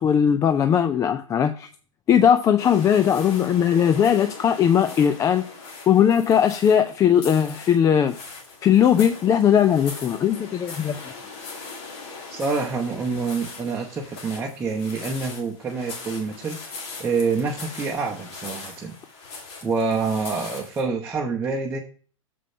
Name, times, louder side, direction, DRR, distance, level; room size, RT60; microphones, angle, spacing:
voice 1, 0.0-1.7 2.1-5.5 5.9-8.1 8.6-11.0, left 8 dB, 20° left, 9 dB, 0.4 m, -19 dB
sound 1, 2.6-20.9, left 4 dB, 55° left, 2.4 m, -40 dB
voice 2, 12.3-16.6 17.0-18.9 19.6-21.8, right 4 dB, 15° right, -1 dB, 0.9 m, -27 dB
7.0 x 5.1 x 5.4 m, 0.42 s
hypercardioid pair, 110°, 17 cm